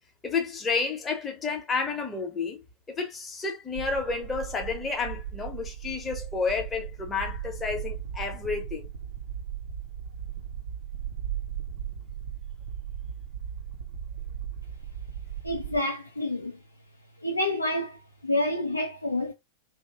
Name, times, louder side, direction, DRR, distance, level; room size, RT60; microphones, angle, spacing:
voice 1, 0.2-2.6 2.9-8.9, left 4 dB, 15° left, 0.9 m, -30 dB
sound 1, 3.7-15.8, right 9 dB, 60° right, 0.6 m, -37 dB
voice 2, 15.4-16.6 17.2-19.3, left 1 dB, 85° left, 0.5 m, -28 dB
2.9 x 2.1 x 3.3 m
figure-of-eight pair, 90°, 0 cm